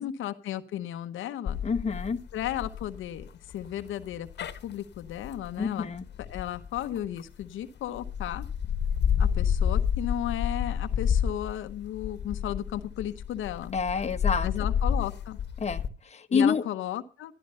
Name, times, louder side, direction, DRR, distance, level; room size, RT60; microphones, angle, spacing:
voice 1, 0.0-1.6 2.3-4.3 4.6-5.9 6.2-8.4 9.2-13.7 14.4-15.4 16.3-17.3, left 11 dB, 80° left, 8 dB, 1.1 m, -34 dB
sound 1, 1.5-7.4 7.9-15.9, left 7 dB, 60° left, 1.5 m, -30 dB
voice 2, 1.6-2.2 5.6-6.0 13.7-14.5 15.6-16.6, left 5 dB, 35° left, 7 dB, 1.3 m, -28 dB
13.0 x 12.0 x 5.5 m, 0.34 s
cardioid pair, 90°, 20 cm